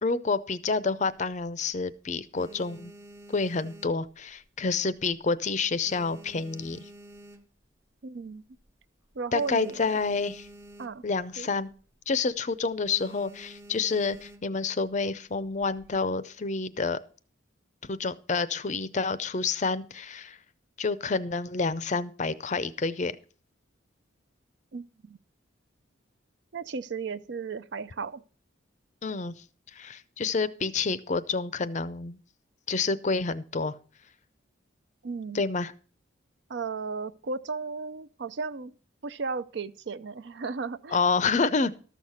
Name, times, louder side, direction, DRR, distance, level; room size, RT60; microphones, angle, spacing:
voice 1, 0.0-2.9 3.3-6.9 9.3-10.5 11.0-11.7 12.1-17.0 17.8-20.4 20.8-23.2 29.0-29.3 29.7-32.2 32.7-33.8 35.3-35.7 40.9-41.7, left 4 dB, 35° left, 0.5 m, -28 dB
sound 1, 1.0-1.8 2.2-4.6 4.9-5.3 5.6-7.8 8.3-8.4 8.6-8.7 9.0-11.2 11.5-11.8 12.1-12.4 12.8-14.7 15.4-16.0, right 1 dB, 15° right, 0.6 m, -50 dB
voice 2, 8.0-8.4 9.2-9.9 10.8-11.0 11.4-11.5 24.7-25.2 26.5-28.2 35.0-35.4 36.5-38.7 39.0-41.0, right 4 dB, 60° right, 0.5 m, -35 dB
13.0 x 6.5 x 5.7 m
head